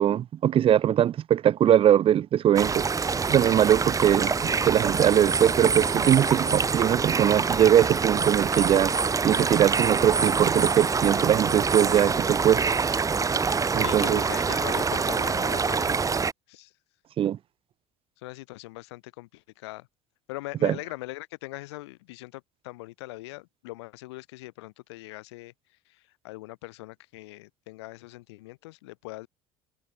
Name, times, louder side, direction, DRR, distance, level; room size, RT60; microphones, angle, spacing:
voice 1, 0.0-2.8 3.2-8.9 9.2-12.6 13.7-14.2 17.2-17.4 20.6-20.8, right 10 dB, 40° right, 0.6 m, -21 dB
sound 1, 2.6-16.3, right 5 dB, 25° right, 2.0 m, -25 dB
voice 2, 13.7-16.2 16.5-16.7 18.2-19.9 20.3-25.5 25.9-29.3, left 20 dB, 85° left, 4.0 m, -41 dB
supercardioid pair, 90°, 14 cm